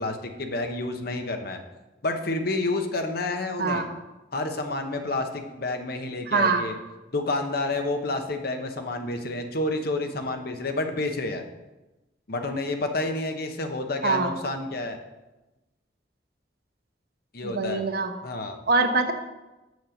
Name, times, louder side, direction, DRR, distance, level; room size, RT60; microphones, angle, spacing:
voice 1, 0.0-1.6 2.0-3.9 4.3-6.7 7.1-11.4 12.3-15.0 17.3-17.8 18.2-18.6, left 2 dB, 60° left, 6 dB, 1.0 m, -29 dB
voice 2, 6.3-6.6 14.0-14.4 17.4-18.1 18.7-19.1, right 3 dB, 60° right, 5 dB, 1.0 m, -23 dB
6.7 x 6.3 x 7.1 m, 1.1 s
head